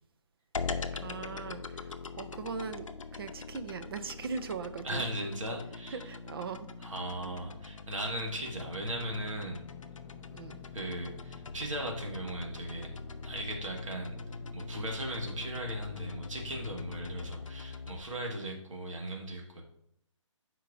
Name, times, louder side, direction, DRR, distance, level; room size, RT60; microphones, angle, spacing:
sound 1, 0.5-18.0, left 4 dB, 85° left, 0.6 m, -42 dB
voice 1, 0.9-5.0 5.9-6.9 10.3-10.6, right 5 dB, 50° right, 10 dB, 0.6 m, -40 dB
voice 2, 4.8-6.1 6.8-9.6 10.7-12.9 13.2-14.2 14.5-19.6, right 1 dB, 80° right, 1 dB, 1.7 m, -37 dB
Engine / Mechanisms, 8.3-17.3, left 6 dB, 15° left, 0.6 m, -55 dB
12.0 x 4.6 x 2.6 m, 0.73 s
hypercardioid pair, 155°, 16 cm